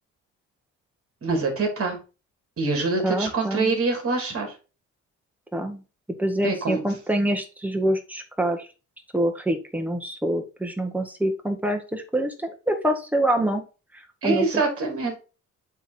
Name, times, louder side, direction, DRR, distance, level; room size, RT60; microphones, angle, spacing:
voice 1, 1.2-2.0 2.6-4.5 6.4-6.8 14.2-15.2, right 3 dB, 50° right, 3 dB, 3.2 m, -25 dB
voice 2, 3.0-3.7 5.5-5.8 6.2-8.6 9.1-13.6 14.2-14.5, right 1 dB, 5° right, 4 dB, 1.6 m, -25 dB
8.1 x 3.7 x 4.4 m, 0.33 s
cardioid pair, 90°, 30 cm